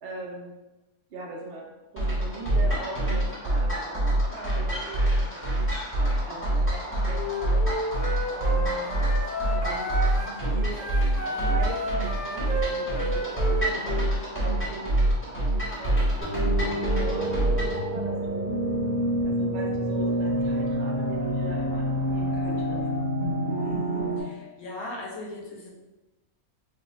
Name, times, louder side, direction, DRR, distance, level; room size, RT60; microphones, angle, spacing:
voice 1, 0.0-0.5 1.1-5.6 6.3-7.8 8.3-9.1 9.6-10.9 11.4-11.8 12.1-14.9 15.8-16.2 16.6-18.5 19.2-22.9, right 1 dB, 65° right, -2 dB, 0.6 m, -40 dB
sound 1, 2.0-17.8, right 1 dB, 10° left, 0.8 m, -26 dB
Wind instrument woodwind instrument, 7.1-10.4 10.7-14.1, equal, 60° left, 0.9 m, -32 dB
sound 2, 16.2-24.2, equal, 45° right, 1.0 m, -27 dB
voice 2, 23.6-25.7, left 1 dB, 75° left, -2 dB, 1.2 m, -39 dB
4.0 x 2.2 x 3.0 m, 1.1 s
omnidirectional pair, 1.6 m